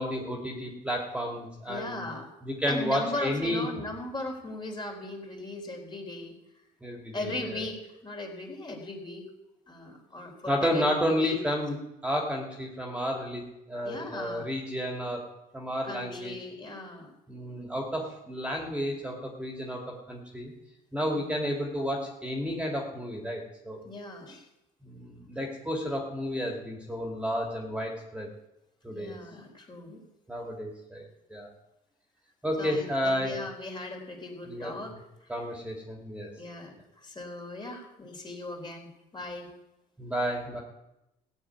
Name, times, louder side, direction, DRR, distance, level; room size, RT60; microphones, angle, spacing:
voice 1, 0.0-2.1 2.4-3.6 6.8-7.6 10.5-11.8 12.0-15.2 15.5-16.3 17.3-19.8 20.1-20.5 20.9-23.8 24.8-28.3 28.8-29.2 30.3-31.5 32.4-33.3 34.5-34.8 35.3-36.3 40.0-40.6, equal, 5° right, 0 dB, 2.6 m, -31 dB
voice 2, 1.7-2.3 2.7-6.4 7.1-9.3 9.7-11.4 13.8-14.5 15.8-17.1 21.0-21.4 23.8-24.5 28.9-30.0 32.6-35.5 36.4-39.5, left 2 dB, 25° left, 1 dB, 3.9 m, -38 dB
16.0 x 6.4 x 9.5 m, 0.90 s
cardioid pair, 110°, 17 cm